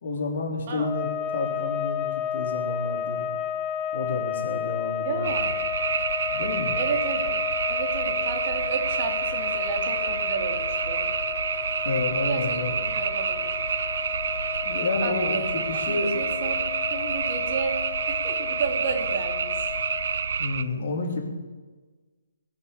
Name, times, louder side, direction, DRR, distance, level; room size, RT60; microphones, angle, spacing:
voice 1, 0.0-2.1 2.3-3.3 3.9-5.4 6.3-6.8 11.8-12.9 14.6-16.3 20.4-21.2, left 3 dB, 50° left, -1 dB, 3.9 m, -30 dB
sound 1, 0.8-20.4, left 8 dB, 15° left, 0.6 m, -32 dB
voice 2, 5.0-5.6 6.8-7.4 7.7-11.1 12.3-12.6 12.9-13.5 15.0-15.5 15.9-16.6 16.9-17.7 18.1-19.6, right 5 dB, 35° right, 2 dB, 2.5 m, -32 dB
sound 2, 5.2-20.6, right 6 dB, 55° right, 0.8 m, -28 dB
20.5 x 7.0 x 8.6 m, 1.4 s
hypercardioid pair, 160°, 0 cm